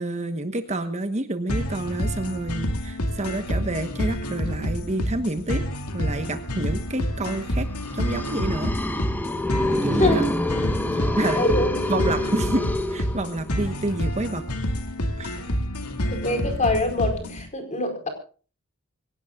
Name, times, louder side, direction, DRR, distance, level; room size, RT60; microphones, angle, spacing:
voice 1, 0.0-5.6 5.9-7.7 7.9-8.7 9.8-10.2 10.9-11.4 11.9-14.4 15.2-15.3, right 2 dB, 30° right, 8 dB, 1.2 m, -28 dB
sound 1, 1.5-17.5, equal, 85° left, 2.3 m, -28 dB
sound 2, 7.7-13.6, left 1 dB, 10° left, 1.1 m, -27 dB
voice 2, 11.3-11.8 16.0-18.1, left 2 dB, 35° left, 5 dB, 4.6 m, -24 dB
24.5 x 17.5 x 2.4 m, 0.38 s
head